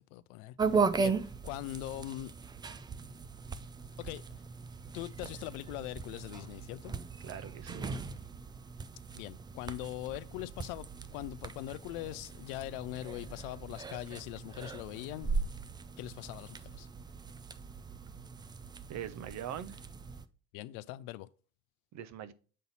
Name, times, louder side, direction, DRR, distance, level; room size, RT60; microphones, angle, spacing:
voice 1, 0.1-2.3 4.0-4.2 4.9-6.9 9.1-10.9 11.1-15.3 16.0-16.9 20.5-21.3, left 16 dB, 65° left, 0.5 m, -41 dB
sound 1, 0.6-20.3, right 4 dB, 10° right, 0.3 m, -38 dB
voice 2, 7.2-8.0 18.9-19.8 21.9-22.3, right 10 dB, 45° right, 0.7 m, -42 dB
7.4 x 3.9 x 4.0 m
hypercardioid pair, 70°, 40 cm